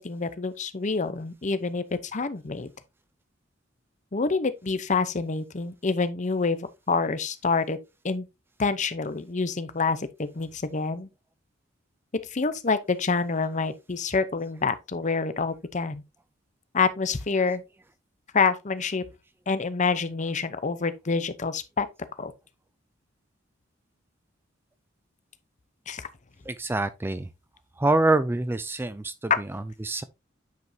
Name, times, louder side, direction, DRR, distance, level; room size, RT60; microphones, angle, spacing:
voice 1, 0.0-1.8 2.1-2.7 4.1-7.8 8.0-8.3 8.6-11.1 12.3-16.0 16.7-17.6 18.3-19.0 19.5-21.9 22.2-22.3 25.9-26.1 29.3-29.4, left 4 dB, 40° left, 0.7 m, -27 dB
voice 2, 26.5-27.3 27.8-30.0, right 2 dB, 10° right, 0.3 m, -26 dB
9.3 x 5.2 x 2.7 m
head